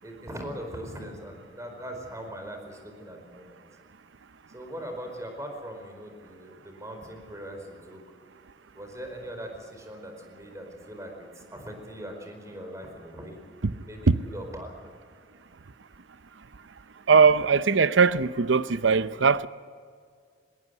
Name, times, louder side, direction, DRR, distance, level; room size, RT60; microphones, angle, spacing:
voice 1, 0.0-3.6 4.5-8.2 8.7-13.4 13.9-14.7, equal, 15° right, 4 dB, 4.6 m, -40 dB
voice 2, 17.1-19.5, right 5 dB, 80° right, 15 dB, 0.7 m, -20 dB
20.5 x 20.0 x 8.2 m, 2.1 s
head